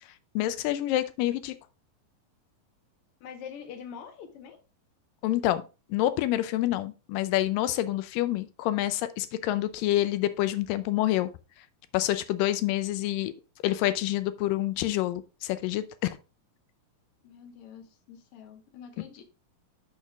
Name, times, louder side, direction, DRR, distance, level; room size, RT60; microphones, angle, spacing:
voice 1, 0.4-1.6 5.2-5.6 5.9-11.3 11.9-13.3 13.6-16.2, left 14 dB, 90° left, 2.3 m, -27 dB
voice 2, 3.2-4.6 17.2-19.2, left 7 dB, 65° left, 1.6 m, -45 dB
6.5 x 6.4 x 3.5 m
omnidirectional pair, 3.9 m